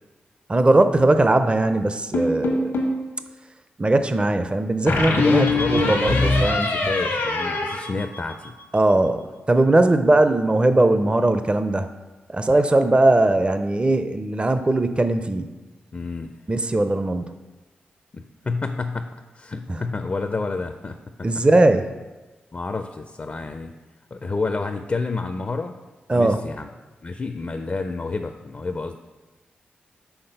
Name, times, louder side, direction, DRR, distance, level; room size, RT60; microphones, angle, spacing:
voice 1, 0.5-2.7 3.8-6.7 8.7-11.9 12.3-15.5 16.5-17.4 21.2-21.9 26.1-26.4, right 2 dB, 25° right, 9 dB, 0.5 m, -19 dB
sound 1, 2.1-3.0 4.9-8.6, left 2 dB, 90° left, 1.2 m, -23 dB
voice 2, 5.1-8.5 15.9-16.4 18.1-21.4 22.5-23.7 24.1-25.7 26.1-26.7 27.0-29.0, left 3 dB, 40° left, 7 dB, 0.4 m, -29 dB
5.8 x 3.8 x 5.4 m, 1.2 s
supercardioid pair, 40°, 4 cm